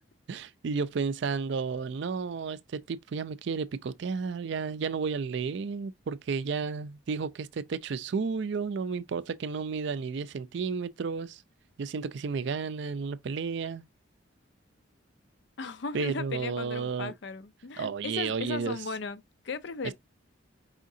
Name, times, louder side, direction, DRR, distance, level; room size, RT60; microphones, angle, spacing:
voice 1, 0.3-11.4 11.8-13.8 15.9-17.1 17.8-18.8, right 5 dB, 55° right, 0.4 m, -32 dB
voice 2, 15.6-19.9, left 4 dB, 55° left, 0.5 m, -37 dB
4.9 x 3.7 x 2.6 m
head